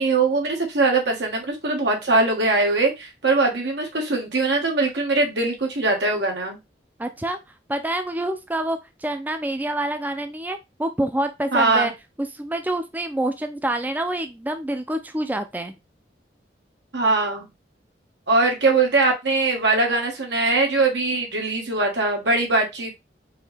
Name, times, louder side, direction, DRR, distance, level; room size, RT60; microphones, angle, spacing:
voice 1, 0.0-6.6 11.5-11.9 16.9-17.5 18.3-22.9, right 3 dB, 85° right, 1 dB, 1.6 m, -21 dB
voice 2, 7.0-7.4 7.7-11.9 12.2-15.8, right 1 dB, 10° right, 7 dB, 0.4 m, -27 dB
4.7 x 3.1 x 3.4 m, 0.22 s
head